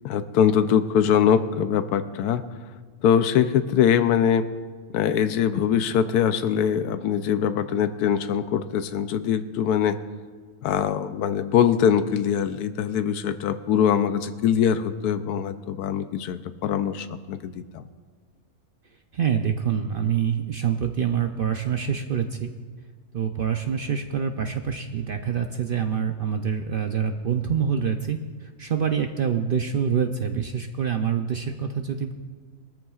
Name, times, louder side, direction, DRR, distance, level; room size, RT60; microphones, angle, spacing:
voice 1, 0.0-2.4 3.0-4.5 4.9-10.0 10.6-17.8, left 8 dB, 90° left, 10 dB, 1.1 m, -22 dB
voice 2, 19.1-22.5 23.1-32.1, right 7 dB, 65° right, 5 dB, 0.5 m, -26 dB
20.5 x 13.5 x 2.4 m, 1.5 s
omnidirectional pair, 1.6 m